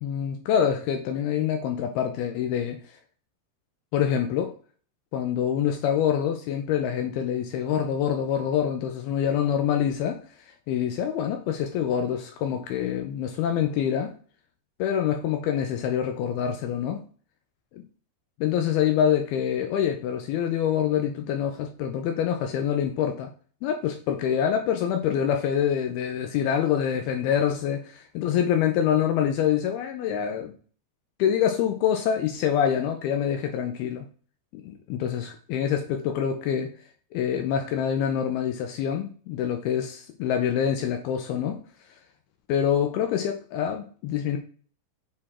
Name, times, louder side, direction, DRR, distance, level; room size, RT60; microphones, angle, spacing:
voice 1, 0.0-2.8 3.9-4.5 5.1-10.2 10.7-14.1 14.8-17.0 17.7-17.8 18.4-23.3 23.6-30.5 31.2-34.1 34.5-36.7 37.1-41.6 42.5-44.4, left 9 dB, 75° left, 4 dB, 2.4 m, -26 dB
7.5 x 4.3 x 4.3 m, 0.42 s
omnidirectional pair, 4.9 m